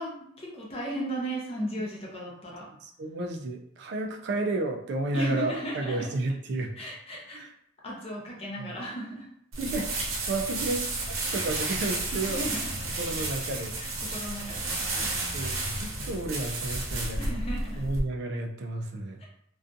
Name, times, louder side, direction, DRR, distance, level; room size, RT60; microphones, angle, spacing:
voice 1, 0.0-2.7 5.1-6.1 6.8-7.4 7.8-9.3 12.3-12.7 13.8-15.4 17.2-17.9 19.2-19.3, equal, 30° left, -3 dB, 0.6 m, -36 dB
voice 2, 2.8-6.7 7.3-7.5 8.6-8.8 9.6-9.9 10.3-12.4 13.0-13.7 15.3-17.4 17.8-19.2, right 2 dB, 55° right, 3 dB, 0.3 m, -32 dB
sound 1, 9.5-18.0, right 2 dB, 80° right, 0.7 m, -32 dB
2.5 x 2.2 x 2.5 m, 0.71 s
head